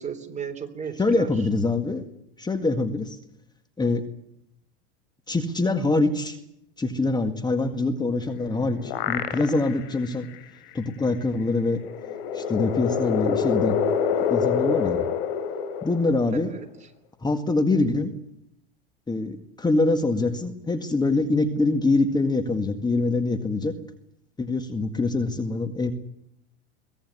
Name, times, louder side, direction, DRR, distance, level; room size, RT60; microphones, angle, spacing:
voice 1, 0.0-1.3 16.5-16.7, right 6 dB, 25° right, 7 dB, 3.4 m, -34 dB
voice 2, 0.9-2.1 2.4-3.2 3.8-4.0 5.3-6.4 6.8-10.3 10.7-11.8 12.3-13.8 14.3-15.1 15.8-16.5 17.2-18.1 19.1-23.8 24.4-25.9, left 3 dB, 15° left, 7 dB, 1.9 m, -24 dB
sound 1, 8.3-9.9 10.3-10.4 11.7-16.5, left 7 dB, 75° left, 3.6 m, -26 dB
23.0 x 17.5 x 9.6 m, 0.78 s
supercardioid pair, 105°, 29 cm